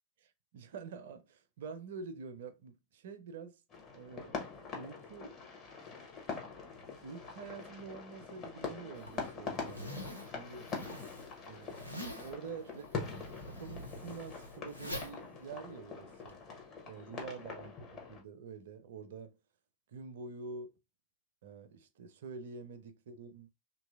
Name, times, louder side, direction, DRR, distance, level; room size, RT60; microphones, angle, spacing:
voice 1, 0.2-3.6 3.9-4.4 4.7-5.4 7.0-10.7 11.5-11.9 12.2-13.0 13.4-16.4 16.8-19.4 19.9-20.8 21.4-23.5, right 5 dB, 60° right, 0.4 m, -47 dB
sound 1, 3.7-18.2, left 4 dB, 30° left, 0.9 m, -44 dB
Zipper (clothing), 8.9-16.4, equal, 90° left, 0.5 m, -46 dB
2.9 x 2.6 x 2.3 m
figure-of-eight pair, 90°, 0 cm